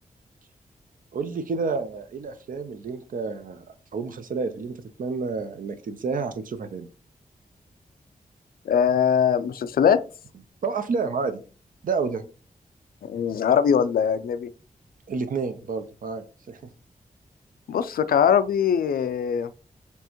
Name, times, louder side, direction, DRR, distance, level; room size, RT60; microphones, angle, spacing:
voice 1, 1.1-3.6 3.9-6.9 10.6-11.4 11.8-12.2 15.1-16.6, right 4 dB, 70° right, 0.6 m, -29 dB
voice 2, 8.7-10.0 13.0-14.5 17.7-19.5, left 7 dB, 85° left, 0.4 m, -21 dB
4.5 x 3.4 x 2.9 m
wide cardioid pair, 95°, 15 cm